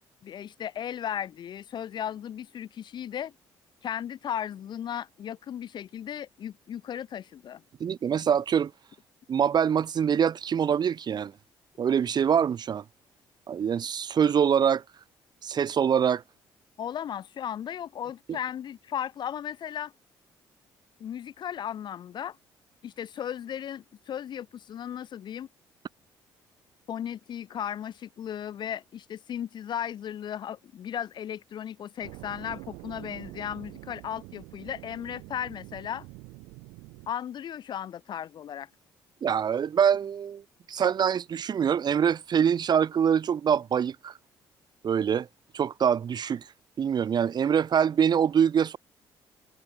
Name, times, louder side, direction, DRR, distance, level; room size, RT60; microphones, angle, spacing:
voice 1, 0.2-3.3 3.8-7.6 16.8-19.9 21.0-22.4 22.8-25.5 26.9-36.1 37.1-38.7, left 9 dB, 55° left, 0.7 m, -36 dB
voice 2, 7.8-8.7 9.3-11.3 11.8-12.8 13.5-14.8 15.4-16.2 39.2-40.4 40.7-44.1 44.8-45.3 45.5-46.4 46.8-48.8, right 8 dB, 50° right, 1.2 m, -24 dB
sound 1, 32.0-37.1, right 26 dB, 85° right, 5.9 m, -45 dB
supercardioid pair, 65°, 9 cm